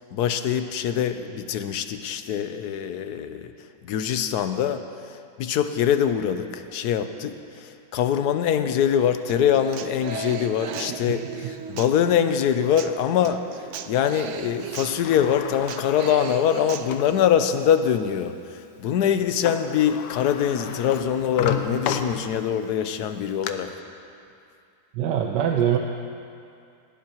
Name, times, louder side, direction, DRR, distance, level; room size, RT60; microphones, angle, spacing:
voice 1, 0.0-3.5 3.8-4.8 5.4-13.4 13.9-23.7, left 9 dB, 70° left, 9 dB, 1.2 m, -23 dB
Human voice / Acoustic guitar, 9.3-17.3, right 7 dB, 70° right, 0.7 m, -37 dB
Sliding door, 14.6-17.2 17.8-17.9 19.2-19.3 19.4-22.6 23.1-23.5, left 8 dB, 90° left, 1.4 m, -33 dB
voice 2, 24.9-25.8, right 9 dB, 85° right, 2 dB, 1.4 m, -22 dB
18.5 x 16.5 x 3.0 m, 2.5 s
omnidirectional pair, 1.8 m